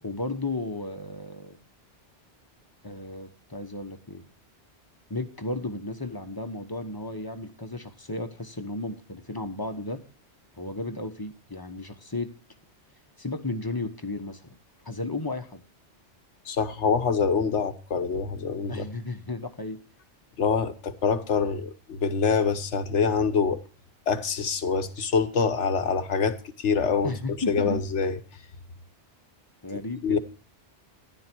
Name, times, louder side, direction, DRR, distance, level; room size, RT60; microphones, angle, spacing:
voice 1, 0.0-1.6 2.8-4.2 5.1-10.0 10.6-12.3 13.2-14.5 14.8-15.6 18.7-19.8 27.0-27.8 29.6-30.2, left 2 dB, 20° left, 1.1 m, -34 dB
voice 2, 16.5-18.9 20.4-23.6 24.1-27.1 27.5-28.2 30.0-30.2, left 5 dB, 80° left, 1.4 m, -25 dB
13.5 x 11.0 x 4.5 m
omnidirectional pair, 1.2 m